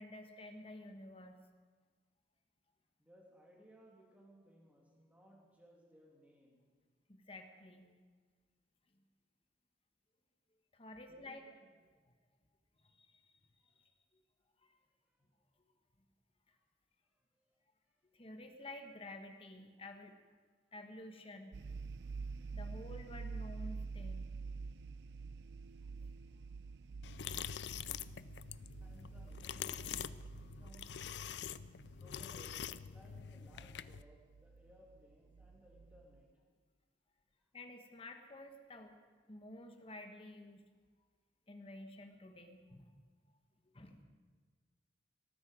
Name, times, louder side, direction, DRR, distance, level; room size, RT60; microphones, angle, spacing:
voice 1, 0.0-1.4 7.1-8.0 10.7-11.4 12.8-13.3 13.6-13.8 14.6-14.7 18.0-20.2 20.7-21.6 22.5-24.3 37.5-39.0 39.3-40.6 41.5-42.9 43.6-44.0, left 1 dB, 35° left, 5 dB, 1.3 m, -51 dB
voice 2, 3.0-6.7 11.1-11.6 16.6-16.7 17.4-17.5 28.8-30.9 31.8-36.3, equal, 10° right, -3 dB, 3.0 m, -63 dB
sound 1, 21.5-36.2, right 4 dB, 70° right, 0.4 m, -48 dB
sound 2, 27.0-34.0, left 9 dB, 75° left, 0.5 m, -45 dB
19.0 x 13.5 x 5.1 m, 1.5 s
head